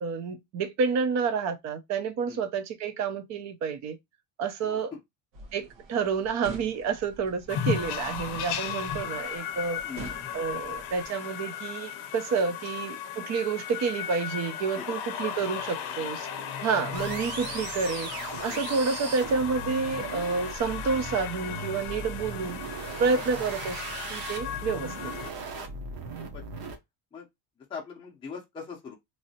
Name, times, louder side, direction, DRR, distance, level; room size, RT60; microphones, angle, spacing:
voice 1, 0.0-4.0 4.4-4.9 5.5-9.8 10.3-16.3 16.6-18.1 18.4-22.6 23.0-23.8 24.1-24.9, right 5 dB, 40° right, 0.6 m, -29 dB
voice 2, 4.6-5.0 9.8-10.1 14.8-14.9 18.5-18.7 23.0-23.2 25.5-25.7 26.2-26.4 27.1-27.3 27.7-28.9, left 6 dB, 10° left, 0.6 m, -41 dB
sound 1, 5.3-11.1, right 2 dB, 85° right, 1.3 m, -46 dB
sound 2, 7.5-25.3, left 8 dB, 60° left, 0.6 m, -36 dB
sound 3, 16.9-26.8, right 3 dB, 55° right, 1.0 m, -38 dB
3.1 x 2.6 x 2.7 m
cardioid pair, 165°, 44 cm